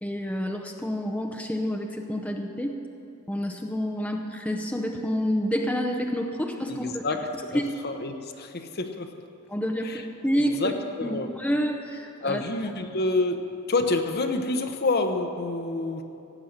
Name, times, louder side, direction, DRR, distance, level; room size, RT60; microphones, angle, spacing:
voice 1, 0.0-2.8 3.3-7.0 7.3-7.7 9.5-12.7, equal, 5° left, 2 dB, 0.7 m, -29 dB
voice 2, 6.7-9.1 9.8-10.0 10.4-11.3 12.2-16.0, left 2 dB, 45° left, 6 dB, 0.9 m, -28 dB
17.0 x 8.6 x 6.6 m, 2.8 s
head